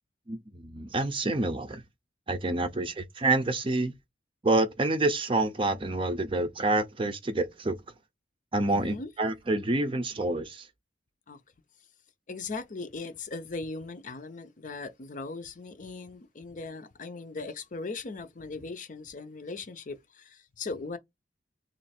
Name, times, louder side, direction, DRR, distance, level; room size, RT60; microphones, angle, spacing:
voice 1, 0.3-1.8 2.3-3.9 4.4-7.8 8.5-10.7, right 2 dB, 30° right, 0.6 m, -28 dB
voice 2, 2.6-2.9 8.7-9.1 11.3-11.4 12.3-21.0, left 3 dB, 45° left, 0.6 m, -39 dB
3.1 x 2.6 x 4.2 m
head